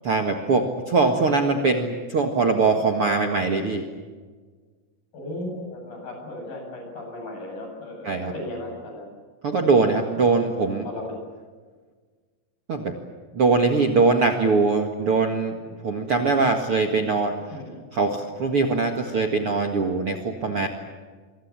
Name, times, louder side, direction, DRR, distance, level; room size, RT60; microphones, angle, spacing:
voice 1, 0.0-3.9 8.0-8.3 9.4-10.8 12.7-12.9 13.3-15.6 15.8-17.3 17.9-20.7, right 4 dB, 45° right, 3 dB, 2.0 m, -22 dB
voice 2, 5.1-9.1 9.9-10.0 10.8-11.2 17.5-17.8, left 1 dB, 60° left, 2 dB, 9.7 m, -36 dB
27.0 x 24.5 x 7.5 m, 1.5 s
omnidirectional pair, 4.7 m